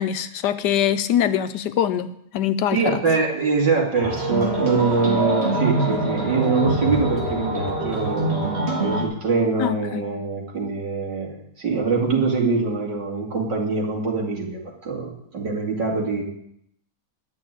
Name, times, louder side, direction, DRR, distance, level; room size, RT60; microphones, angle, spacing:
voice 1, 0.0-3.0 9.6-10.0, left 10 dB, 75° left, 11 dB, 1.3 m, -23 dB
voice 2, 2.7-16.2, right 4 dB, 80° right, -1 dB, 3.2 m, -24 dB
sound 1, 3.9-9.0, right 1 dB, 35° right, 2.4 m, -24 dB
11.5 x 6.5 x 8.7 m, 0.71 s
omnidirectional pair, 1.9 m